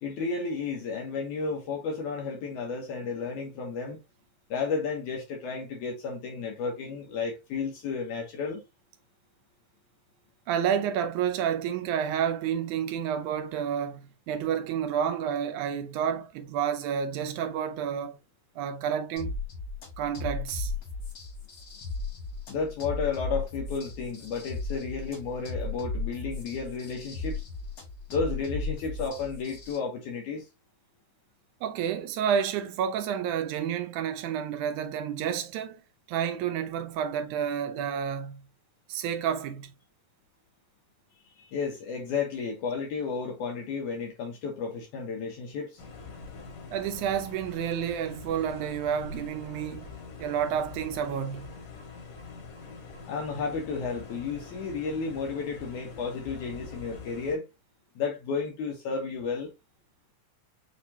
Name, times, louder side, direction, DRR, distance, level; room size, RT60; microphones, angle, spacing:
voice 1, 0.0-4.0 4.5-8.6 22.5-27.4 28.1-30.5 41.4-45.8 53.1-57.5 58.0-59.5, left 5 dB, 75° left, 2.4 m, -32 dB
voice 2, 10.5-18.2 18.6-19.3 20.0-20.7 31.6-35.8 36.1-38.4 38.9-39.7 46.7-49.9 50.2-51.5, right 8 dB, 75° right, 2.1 m, -30 dB
sound 1, 19.2-29.8, left 3 dB, 45° left, 2.3 m, -36 dB
sound 2, 45.8-57.4, left 4 dB, 90° left, 3.1 m, -44 dB
6.6 x 2.9 x 2.7 m
omnidirectional pair, 3.7 m